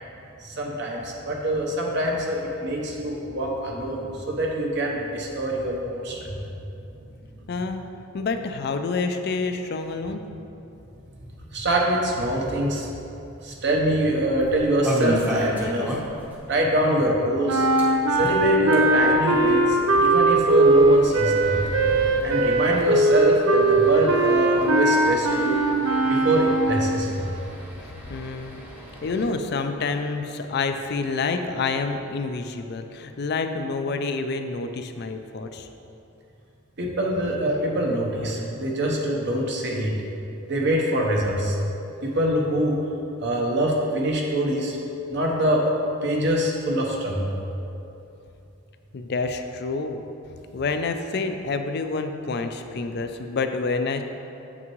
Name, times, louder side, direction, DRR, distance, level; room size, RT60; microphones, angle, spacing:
voice 1, 0.4-6.4 11.5-12.9 13.4-16.0 16.5-17.7 18.2-21.6 22.2-25.6 26.1-27.3 36.8-39.9 40.5-41.6 42.0-42.8 43.2-44.8 45.1-45.7 46.0-47.3, right 1 dB, 55° right, -1 dB, 0.9 m, -24 dB
voice 2, 7.5-7.8 8.1-10.2 28.1-28.6 29.0-35.7 48.9-50.0 50.5-54.0, left 4 dB, 50° left, 7 dB, 0.4 m, -28 dB
sound 1, 14.4-16.4 16.6-16.7 17.0-17.1 17.6-29.3, equal, 10° right, 0.8 m, -34 dB
sound 2, 17.5-27.0, right 2 dB, 70° right, 0.5 m, -20 dB
8.0 x 6.0 x 3.1 m, 2.8 s
head